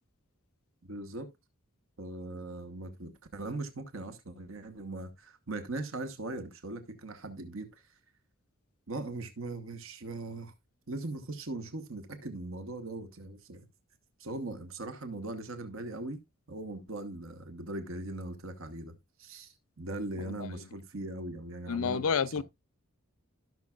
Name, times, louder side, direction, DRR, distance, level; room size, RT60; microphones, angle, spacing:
voice 1, 0.8-1.3 2.0-7.8 8.9-10.5 10.9-13.7 14.2-16.2 16.5-18.9 19.2-22.4, right 2 dB, 65° right, 1.2 m, -40 dB
voice 2, 21.7-22.4, left 6 dB, 75° left, 0.5 m, -29 dB
16.5 x 6.0 x 2.4 m
head